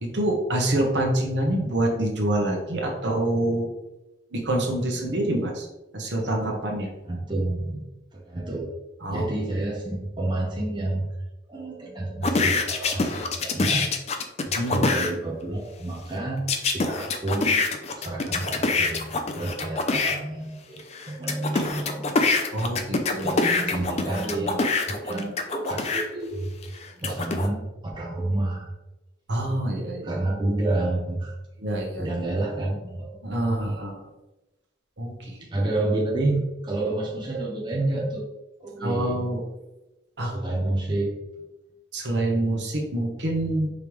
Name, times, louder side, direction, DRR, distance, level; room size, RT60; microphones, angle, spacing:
voice 1, 0.0-3.7 4.3-5.7 5.9-6.9 9.0-9.3 14.5-14.9 22.5-23.3 29.3-30.2 31.6-32.1 33.2-34.0 35.0-35.4 38.8-39.4 40.2-40.3 41.9-43.7, right 1 dB, 65° right, 1 dB, 1.0 m, -26 dB
voice 2, 7.1-7.8 8.1-8.8 9.1-11.2 11.5-13.9 14.7-17.6 18.0-20.8 21.1-22.2 23.2-26.6 27.0-27.6 27.9-28.7 30.0-31.4 32.0-33.2 35.5-38.2 38.6-39.2 40.2-41.1, right 2 dB, 25° right, -2 dB, 0.7 m, -29 dB
sound 1, 12.2-15.1 16.5-20.1 20.8-26.1 26.6-27.5, left 3 dB, 35° left, 0.4 m, -25 dB
5.1 x 3.4 x 3.0 m, 1.0 s
head